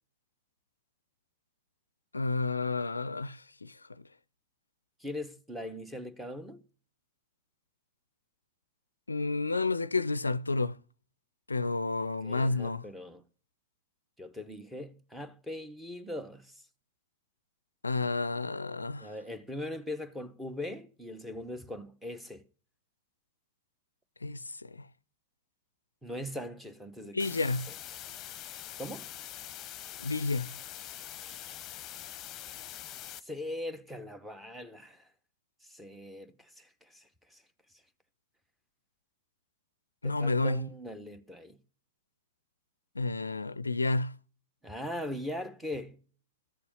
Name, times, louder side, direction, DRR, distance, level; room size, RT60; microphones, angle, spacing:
voice 1, 2.1-3.7 9.1-10.8 11.5-12.8 17.8-19.1 24.2-24.9 27.1-27.7 30.0-30.5 40.0-40.6 43.0-44.1, left 3 dB, 80° left, 0.4 m, -30 dB
voice 2, 5.0-6.6 12.2-13.2 14.2-16.5 19.0-22.4 26.0-27.4 28.8-29.1 31.2-31.6 33.1-35.1 35.6-37.4 40.0-41.6 44.6-46.0, left 1 dB, 5° right, 1.2 m, -41 dB
sound 1, 27.2-33.2, left 12 dB, 30° left, 0.9 m, -44 dB
14.5 x 6.7 x 5.6 m
figure-of-eight pair, 90°, 0 cm